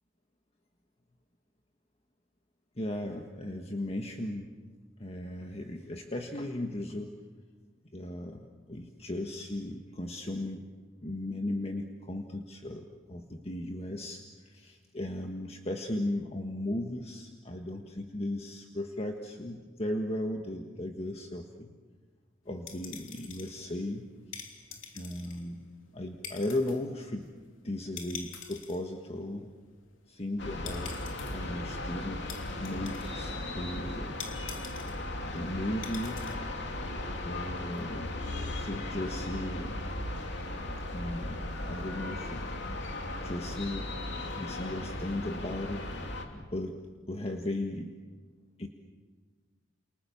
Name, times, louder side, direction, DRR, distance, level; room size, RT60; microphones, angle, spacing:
voice 1, 2.7-4.5 5.0-7.1 7.9-10.7 11.0-21.8 22.4-24.4 24.9-25.7 25.9-27.3 27.6-29.5 30.1-30.9 31.2-34.2 35.2-36.3 37.2-38.1 38.5-39.8 40.9-42.4 43.2-43.9 44.4-45.8 46.3-46.8 47.1-47.9 48.6-48.7, left 1 dB, 30° left, 3 dB, 1.5 m, -36 dB
sound 1, 22.5-36.3, left 6 dB, 80° left, 3.3 m, -47 dB
sound 2, 30.4-46.3, left 2 dB, 60° left, 3.1 m, -37 dB
29.0 x 29.0 x 7.1 m, 1.5 s
head